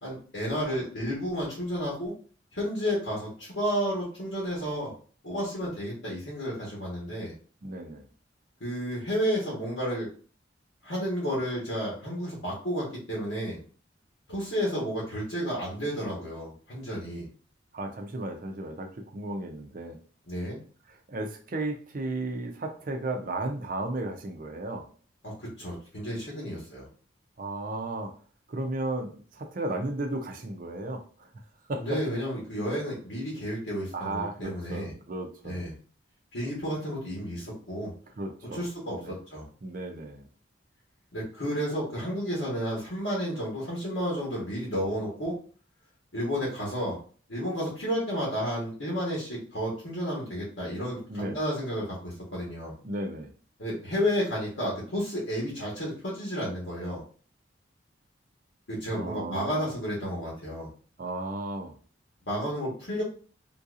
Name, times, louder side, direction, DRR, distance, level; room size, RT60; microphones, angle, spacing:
voice 1, 0.0-2.1 2.5-4.9 5.2-7.3 8.6-10.1 10.8-13.6 14.3-17.3 20.3-20.6 25.2-26.9 31.7-34.9 35.4-35.7 36.3-37.9 38.5-39.4 41.1-45.4 46.1-47.0 47.3-52.7 53.6-57.0 58.7-60.7 62.3-63.0, equal, 80° left, -5 dB, 1.2 m, -31 dB
voice 2, 7.6-8.0 17.7-20.0 21.1-24.8 27.4-28.1 28.5-31.3 31.7-32.0 33.9-35.7 38.2-38.7 39.0-39.2 39.6-40.3 51.1-51.4 52.8-53.3 58.9-59.7 61.0-61.7, right 2 dB, 45° right, 4 dB, 0.5 m, -34 dB
3.8 x 2.7 x 2.4 m, 0.42 s
head